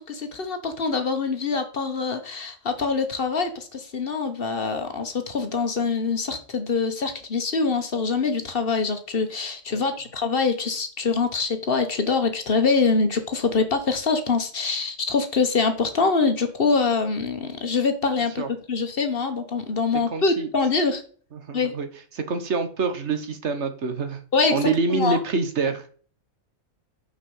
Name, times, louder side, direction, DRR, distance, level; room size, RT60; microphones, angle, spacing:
voice 1, 0.1-18.4 18.7-21.0 21.5-21.7 24.3-25.2, left 4 dB, 50° left, 7 dB, 1.3 m, -24 dB
voice 2, 20.1-20.5 21.3-21.9 22.1-24.2 24.5-25.9, right 4 dB, 65° right, 8 dB, 1.4 m, -26 dB
5.9 x 5.6 x 5.4 m, 0.43 s
omnidirectional pair, 1.3 m